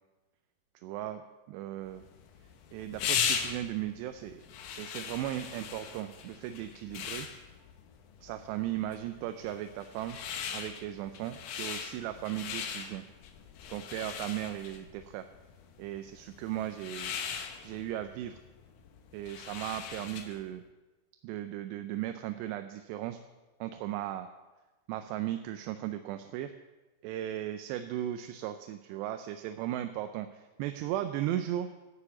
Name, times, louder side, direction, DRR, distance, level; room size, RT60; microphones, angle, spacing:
voice 1, 0.8-1.2 1.5-2.0 2.7-4.4 4.7-7.3 8.2-10.2 10.5-13.1 13.7-15.3 15.8-17.1 17.6-18.4 19.1-20.6 21.2-23.2 23.6-24.3 24.9-26.5 27.0-31.7, right 12 dB, 85° right, 8 dB, 2.7 m, -36 dB
sound 1, 1.9-20.5, left 7 dB, 85° left, 1.7 m, -39 dB
11.5 x 6.9 x 7.1 m, 1.2 s
omnidirectional pair, 4.9 m